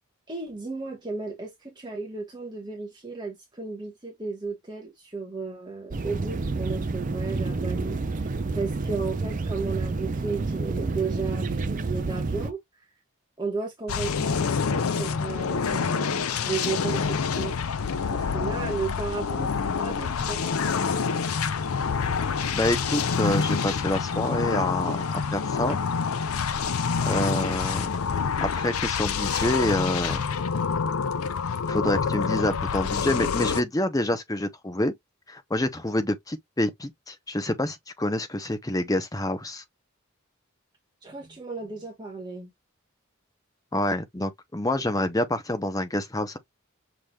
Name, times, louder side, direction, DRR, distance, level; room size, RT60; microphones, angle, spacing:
voice 1, 0.3-12.6 13.4-17.5 18.1-20.6 41.0-42.5 44.7-44.8, right 4 dB, 20° right, 1.3 m, -34 dB
sound 1, 5.9-12.5, right 3 dB, 40° right, 0.5 m, -29 dB
sound 2, 13.9-33.6, left 5 dB, 85° left, 0.6 m, -27 dB
voice 2, 22.5-25.8 27.0-27.9 28.4-30.2 31.7-34.9 35.3-39.6 43.7-46.4, left 1 dB, 15° left, 0.7 m, -27 dB
5.9 x 3.4 x 2.3 m
head